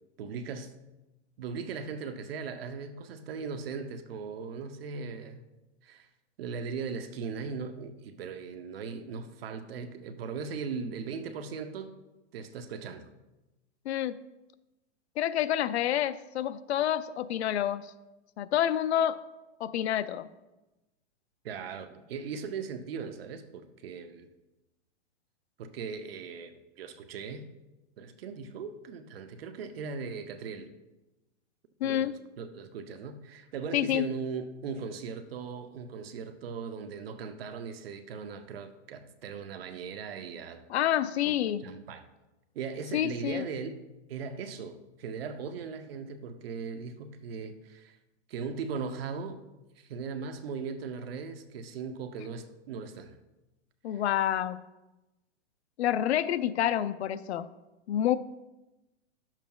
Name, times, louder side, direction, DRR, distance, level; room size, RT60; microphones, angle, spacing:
voice 1, 0.2-0.7 1.4-5.4 5.8-6.1 6.4-11.9 12.3-13.1 21.4-24.3 25.6-27.5 28.0-30.7 31.8-40.6 41.3-42.1 42.5-43.8 44.1-48.0 48.3-49.4 49.8-53.2 53.9-54.0, right 5 dB, 55° right, 0.7 m, -39 dB
voice 2, 13.9-14.2 15.2-17.9 18.4-19.2 19.6-20.3 31.8-32.2 33.7-34.1 40.7-41.6 42.9-43.5 53.8-54.6 55.8-57.5 57.9-58.2, left 11 dB, 65° left, 0.5 m, -28 dB
10.5 x 7.3 x 2.3 m
hypercardioid pair, 160°, 35 cm